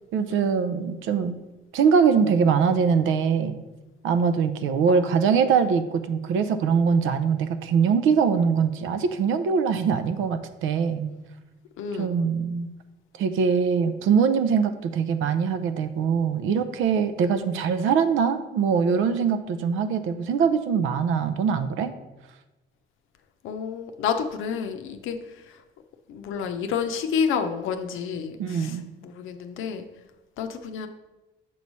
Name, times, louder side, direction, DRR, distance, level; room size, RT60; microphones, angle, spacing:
voice 1, 0.1-1.4 1.7-3.6 4.0-11.1 12.0-12.7 13.2-21.9 28.4-28.8, right 6 dB, 85° right, 10 dB, 0.5 m, -22 dB
voice 2, 11.8-12.1 23.4-25.2 25.5-25.6 26.1-29.9 30.4-30.9, left 6 dB, 85° left, 7 dB, 0.6 m, -29 dB
6.9 x 3.1 x 5.3 m, 1.1 s
cardioid pair, 90°, 20 cm